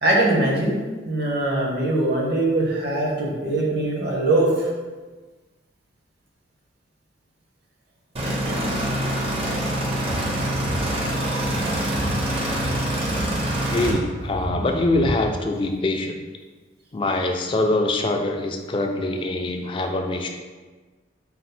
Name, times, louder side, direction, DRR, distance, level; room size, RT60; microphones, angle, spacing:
voice 1, 0.0-0.8 1.0-4.7 8.2-8.7, right 2 dB, 60° right, -3 dB, 0.9 m, -22 dB
sound 1, 8.2-13.9, right 1 dB, 30° right, 0.5 m, -25 dB
sound 2, 9.7-15.4, right 1 dB, 85° right, 0.7 m, -32 dB
voice 2, 13.7-16.2 16.9-20.3, left 2 dB, 25° left, 3 dB, 0.3 m, -24 dB
4.1 x 2.0 x 4.2 m, 1.3 s
head